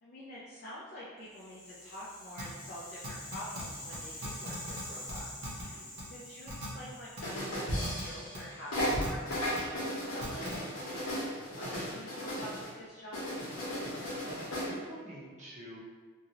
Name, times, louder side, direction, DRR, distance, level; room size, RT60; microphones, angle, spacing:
voice 1, 0.0-10.5 10.8-13.4, equal, 45° left, -6 dB, 0.4 m, -47 dB
Rattle (instrument), 1.2-9.4, left 1 dB, 30° left, 0.9 m, -48 dB
sound 1, 2.4-2.5 3.0-3.6 3.9-4.0 4.2-4.8 5.1-5.6 6.0-6.1 6.5-6.7 7.2-7.3 7.8-8.0 8.3-8.4 8.9-9.6 10.2-10.5, equal, 70° right, 0.8 m, -40 dB
sound 2, 7.2-8.4 8.7-12.7 13.1-14.7, equal, 80° left, 1.0 m, -35 dB
voice 2, 14.3-15.8, right 1 dB, 35° right, -6 dB, 0.6 m, -47 dB
2.7 x 2.4 x 3.0 m, 1.4 s
head